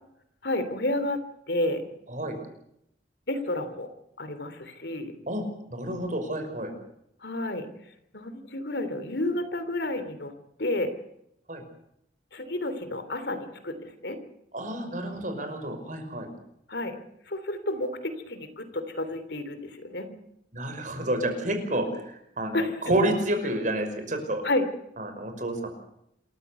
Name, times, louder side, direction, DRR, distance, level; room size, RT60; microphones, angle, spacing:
voice 1, 0.4-1.2 1.5-1.8 3.3-3.9 4.2-5.1 7.2-7.7 8.1-10.3 10.6-11.0 12.3-14.2 16.7-17.0 17.3-20.1 22.5-22.7 24.4-24.7, left 1 dB, 65° left, 10 dB, 3.2 m, -30 dB
voice 2, 2.1-2.4 5.3-5.4 5.7-6.7 11.5-11.6 14.5-16.3 20.5-24.4 25.0-25.7, right 1 dB, 45° right, 6 dB, 5.7 m, -29 dB
27.5 x 15.0 x 8.3 m, 0.77 s
head